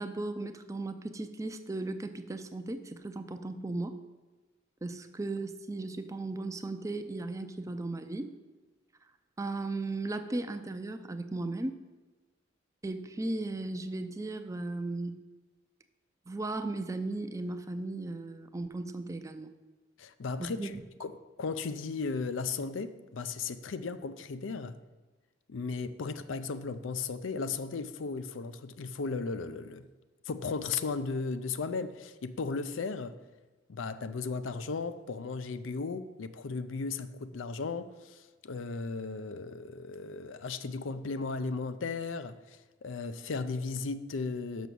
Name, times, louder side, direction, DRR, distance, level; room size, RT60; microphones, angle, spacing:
voice 1, 0.0-4.0 4.8-8.3 9.4-11.8 12.8-15.2 16.3-19.5 20.4-20.8, right 2 dB, 15° right, 0.4 m, -36 dB
voice 2, 20.0-20.7 21.0-21.1 21.4-24.8 25.5-29.9 30.3-33.1 33.7-44.7, left 4 dB, 85° left, 0.5 m, -36 dB
6.2 x 6.1 x 6.8 m
head